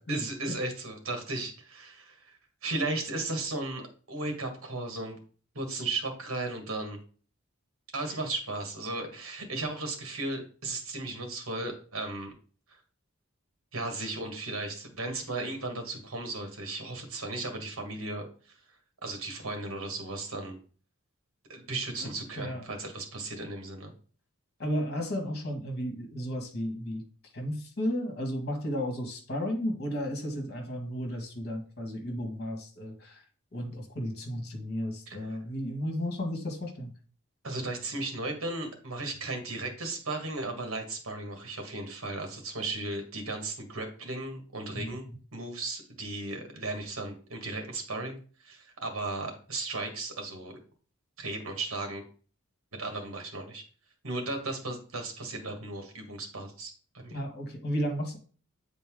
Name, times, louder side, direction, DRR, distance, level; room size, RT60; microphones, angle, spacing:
voice 1, 0.1-3.8 4.1-5.2 5.6-7.0 7.9-12.3 13.7-18.3 19.0-20.6 21.5-23.9 35.1-35.4 37.4-45.0 45.3-50.6 51.2-52.0 52.8-53.6 54.0-57.2, right 2 dB, 75° right, 4 dB, 1.8 m, -35 dB
voice 2, 22.0-22.6 24.6-27.1 27.3-33.2 33.5-36.9 44.7-45.2 57.1-58.2, equal, 50° left, 3 dB, 1.8 m, -33 dB
8.5 x 4.1 x 3.7 m, 0.40 s
head